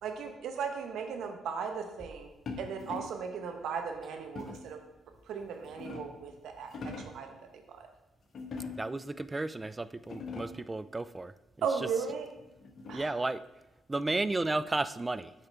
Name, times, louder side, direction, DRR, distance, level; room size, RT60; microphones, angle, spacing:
voice 1, 0.0-4.8 5.3-7.9 11.6-12.3 12.9-13.2, right 6 dB, 70° right, 5 dB, 1.0 m, -37 dB
sound 1, 2.5-3.3 4.3-4.8 5.4-6.3 6.6-7.3 8.3-9.0 9.6-9.7 10.0-10.7 12.1-13.2, left 3 dB, 55° left, 1.2 m, -43 dB
voice 2, 8.8-11.3 12.9-13.4 13.9-15.3, right 2 dB, 25° right, 15 dB, 0.4 m, -33 dB
8.5 x 5.7 x 3.4 m, 1.0 s
hypercardioid pair, 50°, 0 cm